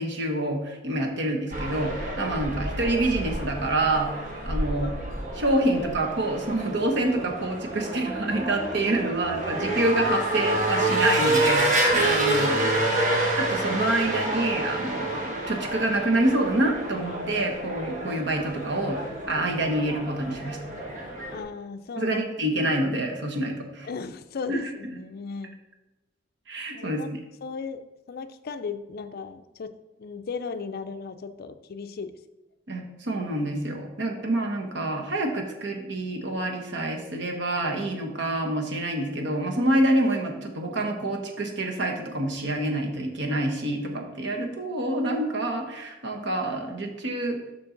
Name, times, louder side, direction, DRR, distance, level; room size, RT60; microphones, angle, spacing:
voice 1, 0.0-4.9 5.3-12.6 13.4-19.0 19.3-20.6 22.0-23.9 24.5-24.7 26.5-27.1 32.7-47.4, right 1 dB, 65° right, 2 dB, 1.1 m, -27 dB
sound 1, 1.5-21.4, right 1 dB, 45° right, 1.4 m, -28 dB
voice 2, 12.3-13.0 21.3-22.2 22.6-22.7 23.8-25.6 26.7-27.1 27.4-27.8 28.1-32.1, left 5 dB, 55° left, 9 dB, 0.5 m, -36 dB
7.0 x 5.6 x 3.9 m, 1.1 s
head